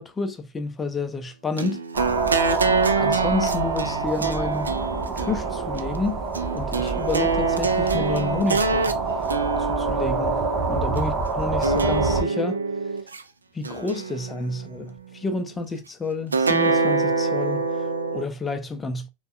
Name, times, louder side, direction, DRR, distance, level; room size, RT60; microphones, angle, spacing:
voice 1, 0.0-1.8 3.0-4.7 5.2-6.2 6.5-8.9 9.6-12.6 13.5-19.1, left 3 dB, 15° left, 0.5 m, -30 dB
sound 1, 1.6-11.0 11.6-13.2 13.7-14.8 16.3-18.3, right 4 dB, 75° right, 0.3 m, -26 dB
sound 2, 1.9-12.2, right 4 dB, 30° right, 0.7 m, -26 dB
3.4 x 2.2 x 2.3 m
figure-of-eight pair, 90°, 0 cm